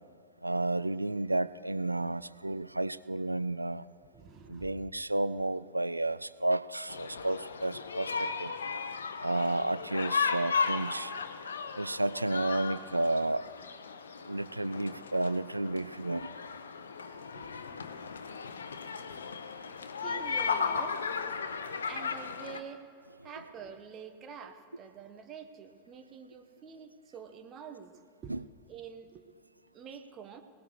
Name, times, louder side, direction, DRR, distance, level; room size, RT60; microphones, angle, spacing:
voice 1, 0.4-3.8 4.5-8.5 9.2-11.1 11.8-13.4 14.3-16.3 28.3-28.4, right 2 dB, 85° right, 16 dB, 0.3 m, -31 dB
voice 2, 4.1-4.9 17.3-17.5 18.3-18.4 20.0-21.0 21.9-22.9 23.2-27.9 28.2-28.4 28.7-29.2 29.7-30.4, right 7 dB, 30° right, 6 dB, 1.2 m, -47 dB
sound 1, 6.9-22.6, left 5 dB, 70° left, 0.7 m, -36 dB
22.0 x 18.5 x 3.2 m, 2.4 s
figure-of-eight pair, 90°, 0 cm